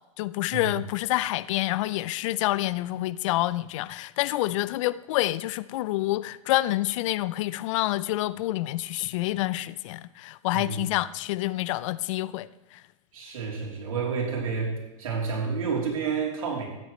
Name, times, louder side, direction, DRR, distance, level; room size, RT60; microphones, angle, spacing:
voice 1, 0.2-12.5, left 16 dB, 65° left, 17 dB, 0.5 m, -27 dB
voice 2, 13.1-16.7, right 5 dB, 85° right, -2 dB, 3.3 m, -30 dB
13.5 x 9.5 x 3.2 m, 1.0 s
hypercardioid pair, 115°, 17 cm